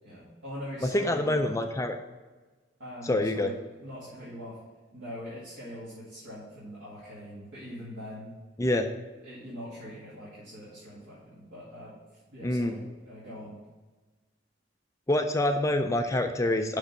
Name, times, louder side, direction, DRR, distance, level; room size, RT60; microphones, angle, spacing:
voice 1, 0.0-1.4 2.8-4.6 4.9-8.3 9.2-13.6, equal, 80° right, -9 dB, 2.4 m, -42 dB
voice 2, 0.8-2.0 3.0-3.5 8.6-8.9 12.4-12.7 15.1-16.8, left 1 dB, 15° left, 6 dB, 0.4 m, -26 dB
6.2 x 5.2 x 6.6 m, 1.3 s
head